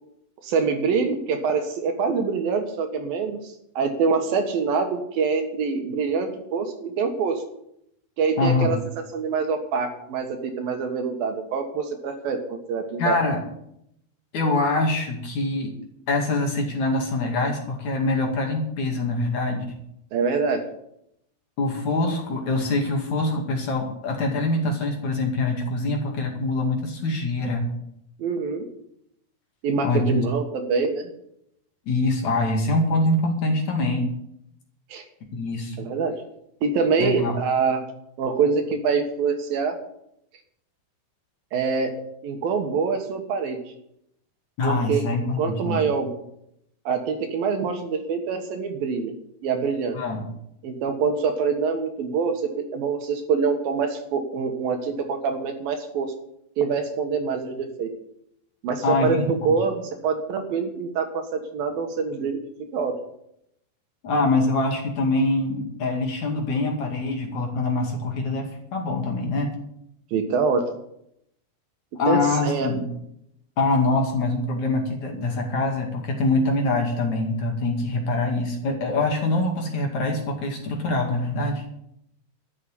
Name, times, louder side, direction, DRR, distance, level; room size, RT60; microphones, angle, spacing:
voice 1, 0.4-7.4 8.2-8.8 9.1-13.2 20.1-20.7 28.2-28.6 29.6-31.1 34.9-35.0 35.8-36.2 36.6-37.8 38.2-39.8 41.5-43.6 44.6-45.0 45.4-46.1 46.9-49.1 49.4-50.0 50.6-56.1 56.6-57.9 58.6-62.4 62.7-62.9 70.1-70.6 72.1-72.7, right 5 dB, 65° right, 5 dB, 3.1 m, -25 dB
voice 2, 8.4-8.7 13.0-13.4 14.3-15.7 16.1-19.8 21.6-27.7 29.8-30.3 31.9-34.1 35.3-35.9 37.0-37.3 44.6-45.9 49.9-50.3 58.8-59.6 64.0-69.5 72.0-72.8 73.6-81.6, left 2 dB, 50° left, 2 dB, 3.3 m, -24 dB
12.5 x 8.0 x 9.8 m, 0.76 s
omnidirectional pair, 4.7 m